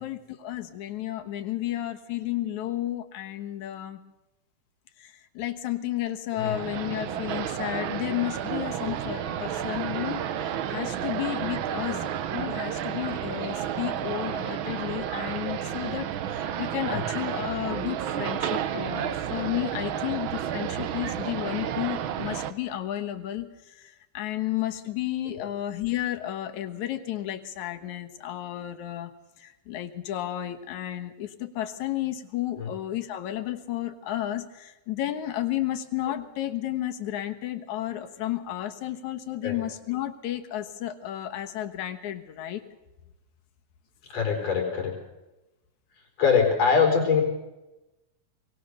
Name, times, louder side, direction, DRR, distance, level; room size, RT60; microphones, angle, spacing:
voice 1, 0.0-4.0 5.0-10.3 10.7-29.1 29.4-42.6, left 13 dB, 75° left, 8 dB, 2.6 m, -32 dB
sound 1, 6.4-22.5, right 9 dB, 85° right, 1.1 m, -31 dB
voice 2, 44.1-44.9 46.2-47.2, left 6 dB, 55° left, 1 dB, 5.6 m, -23 dB
23.0 x 19.0 x 6.7 m, 1.0 s
omnidirectional pair, 3.5 m